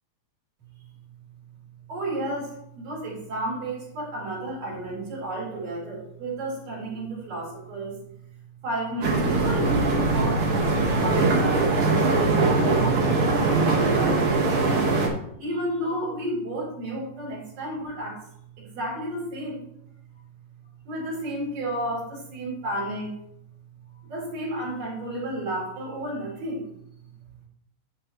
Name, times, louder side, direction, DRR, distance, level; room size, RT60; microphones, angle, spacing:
voice 1, 1.9-8.0 8.6-13.4 13.7-14.9 15.4-18.2 18.6-19.7 20.9-23.1 24.0-26.7, right 1 dB, 50° right, -6 dB, 4.3 m, -32 dB
sound 1, 9.0-15.1, right 3 dB, 65° right, 1.4 m, -21 dB
8.7 x 8.6 x 3.1 m, 0.72 s
omnidirectional pair, 5.3 m